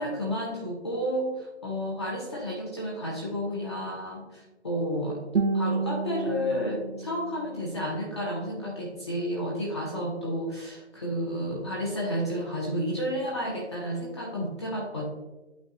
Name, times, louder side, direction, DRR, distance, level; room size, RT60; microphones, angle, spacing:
voice 1, 0.0-5.2 5.5-15.1, equal, 25° left, -3 dB, 0.8 m, -31 dB
Guitar, 5.3-8.4, right 4 dB, 70° right, 0.8 m, -31 dB
11.5 x 3.9 x 2.6 m, 1.1 s
figure-of-eight pair, 155°, 35 cm